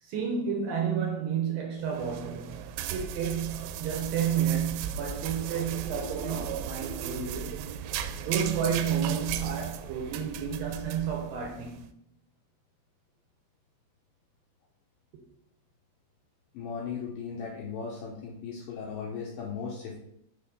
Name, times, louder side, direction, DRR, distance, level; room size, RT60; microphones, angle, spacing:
voice 1, 0.0-2.6 2.9-7.5 8.2-11.8, right 7 dB, 70° right, 2.4 m, -31 dB
sound 1, 1.8-11.8, right 8 dB, 90° right, 2.8 m, -36 dB
voice 2, 16.5-20.0, left 6 dB, 80° left, 2.1 m, -37 dB
6.9 x 4.2 x 5.6 m
omnidirectional pair, 5.0 m